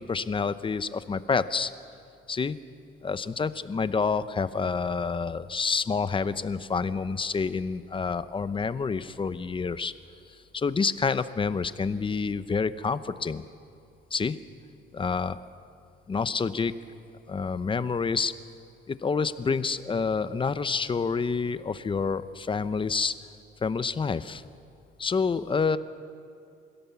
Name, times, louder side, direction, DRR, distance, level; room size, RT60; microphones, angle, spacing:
voice 1, 0.0-1.7 2.3-2.6 3.0-9.9 10.5-13.4 14.1-14.4 14.9-15.4 16.1-16.7 17.3-18.3 18.9-23.1 23.6-24.4 25.0-25.8, left 5 dB, 25° left, 13 dB, 0.7 m, -28 dB
25.0 x 16.5 x 7.1 m, 2.4 s
cardioid pair, 110°, 20 cm